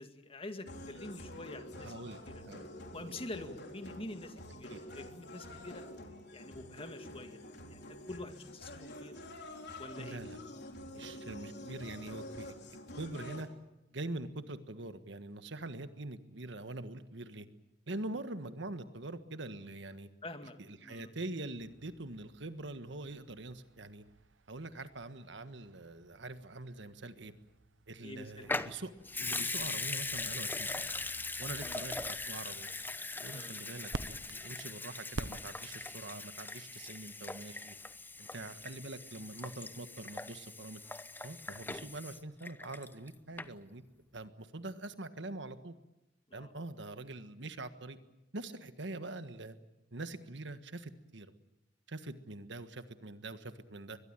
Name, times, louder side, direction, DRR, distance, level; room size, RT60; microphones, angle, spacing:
voice 1, 0.0-1.9 2.3-2.4 2.9-5.8 6.3-7.4 7.7-9.2 9.8-10.3 10.9-11.2 20.2-20.6 20.8-21.1 28.0-28.6 31.6-31.8 33.3-33.6 46.3-46.5, left 2 dB, 30° left, 7 dB, 2.0 m, -46 dB
sound 1, 0.6-13.4, left 1 dB, 65° left, 4.0 m, -48 dB
voice 2, 1.7-2.7 3.0-3.2 4.7-4.8 10.0-10.4 10.9-12.5 13.0-13.5 13.9-17.5 17.9-20.1 20.6-24.0 24.5-27.3 27.9-28.9 29.2-30.9 31.4-32.7 33.2-37.8 38.2-40.8 41.2-43.8 44.1-45.7 46.3-48.0 48.3-49.6 49.9-51.3 51.9-54.0, right 2 dB, 70° right, 10 dB, 1.5 m, -44 dB
sound 2, 21.6-36.0, right 2 dB, 90° right, 1.0 m, -50 dB
Water tap faucet / Sink (filling or washing) / Liquid, 28.4-43.1 43.4-43.5, left 3 dB, 10° left, 0.8 m, -40 dB
22.5 x 21.5 x 9.0 m, 0.93 s
head